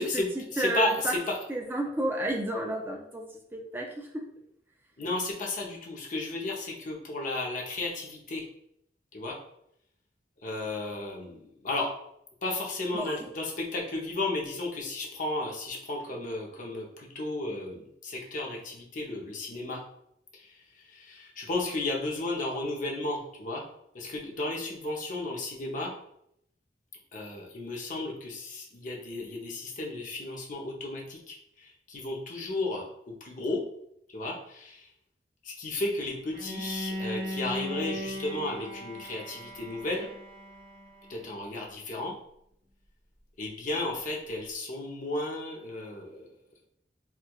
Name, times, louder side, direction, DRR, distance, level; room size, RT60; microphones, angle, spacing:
voice 1, 0.0-1.5 5.0-8.5 9.1-9.4 10.4-11.9 12.4-19.8 20.3-23.6 23.9-25.9 27.1-33.6 34.1-34.9 35.4-40.1 41.1-42.1 43.4-46.3, left 2 dB, 50° left, -1 dB, 0.7 m, -34 dB
voice 2, 0.6-1.1 1.5-3.2 3.5-4.1 12.9-13.3, right 1 dB, 10° right, 1 dB, 0.4 m, -31 dB
Bowed string instrument, 36.3-41.3, equal, 60° right, 1.4 m, -38 dB
4.4 x 2.3 x 2.3 m, 0.74 s
head